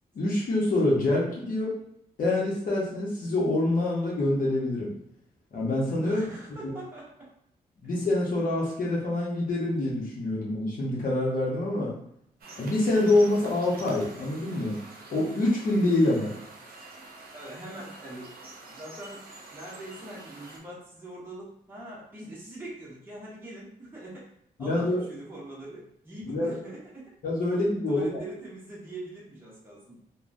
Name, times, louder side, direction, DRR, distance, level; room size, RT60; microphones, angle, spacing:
voice 1, 0.1-1.7 2.2-4.9 5.5-6.2 6.6-6.7 7.8-11.9 12.6-14.8 15.1-16.3 24.6-25.0 26.2-26.5 27.2-28.2, left 2 dB, 60° left, -5 dB, 0.8 m, -26 dB
voice 2, 6.0-7.3 17.3-24.3 24.6-27.1 27.9-30.0, right 1 dB, 15° right, -6 dB, 0.8 m, -43 dB
sound 1, 12.4-20.6, right 2 dB, 75° right, 0.6 m, -46 dB
3.4 x 2.2 x 2.5 m, 0.72 s
wide cardioid pair, 155°, 16 cm